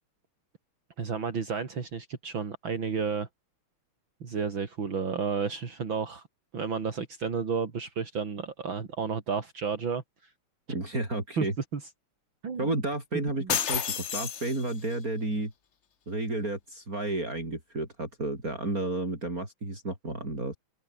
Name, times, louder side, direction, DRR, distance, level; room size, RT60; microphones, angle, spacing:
voice 1, 1.0-3.3 4.2-6.2 6.5-10.0 11.4-11.5 11.7-11.8 12.4-12.7 13.4-13.6, right 5 dB, 60° right, 3.5 m, -31 dB
voice 2, 10.7-11.5 12.6-15.5 16.1-20.6, right 2 dB, 40° right, 7.0 m, -32 dB
sound 1, 13.5-15.0, left 8 dB, 55° left, 0.7 m, -31 dB
open air
omnidirectional pair, 2.4 m